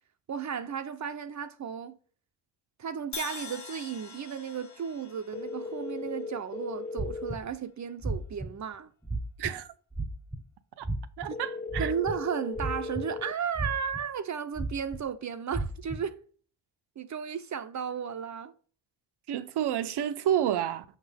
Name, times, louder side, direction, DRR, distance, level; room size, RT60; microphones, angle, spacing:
voice 1, 0.3-2.0 2.8-8.9 11.8-16.2 17.0-18.5, right 7 dB, 45° right, 0.7 m, -34 dB
Crash cymbal, 3.1-7.2, left 5 dB, 45° left, 1.5 m, -44 dB
sound 1, 5.3-7.3 11.3-13.3, left 4 dB, 25° left, 0.4 m, -37 dB
sound 2, 7.0-7.5 8.0-8.5 9.0-9.5 9.9-10.4 10.8-11.3 11.7-12.1 12.6-13.2 13.5-14.0 14.6-15.0 15.5-16.0, right 2 dB, ahead, 0.8 m, -32 dB
voice 2, 11.2-11.9 19.3-20.8, right 10 dB, 75° right, 0.8 m, -29 dB
6.5 x 6.0 x 3.4 m
cardioid pair, 105°, 40 cm